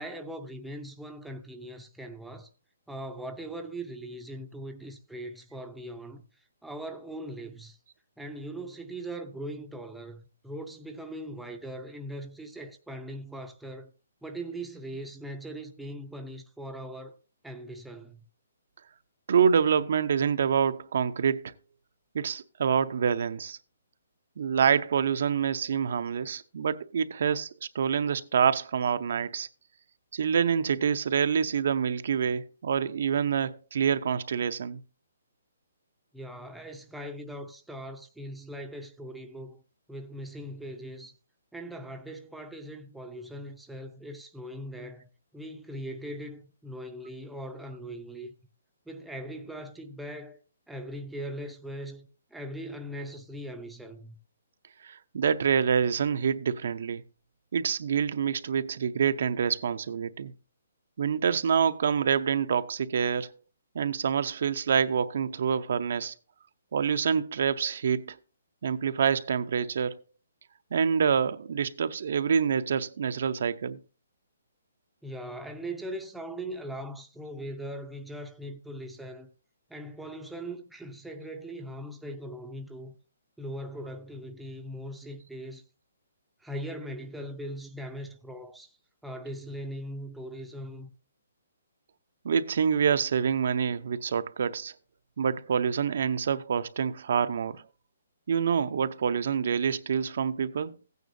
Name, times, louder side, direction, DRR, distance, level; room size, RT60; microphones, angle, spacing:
voice 1, 0.0-2.5 2.9-7.8 8.2-13.9 14.2-17.2 17.4-18.2 36.1-39.6 39.9-41.1 41.5-48.3 48.9-50.4 50.7-54.2 75.0-79.3 79.7-82.9 83.4-85.6 86.4-88.8 89.0-90.9, right 1 dB, ahead, 0.6 m, -40 dB
voice 2, 19.3-21.5 22.1-23.6 24.4-29.5 30.1-34.8 54.8-57.0 57.5-60.3 61.0-63.3 63.7-66.1 66.7-68.2 68.6-70.0 70.7-73.8 92.2-94.7 95.2-97.6 98.3-100.8, right 7 dB, 55° right, 0.6 m, -26 dB
15.0 x 9.3 x 2.6 m
hypercardioid pair, 170°, 0 cm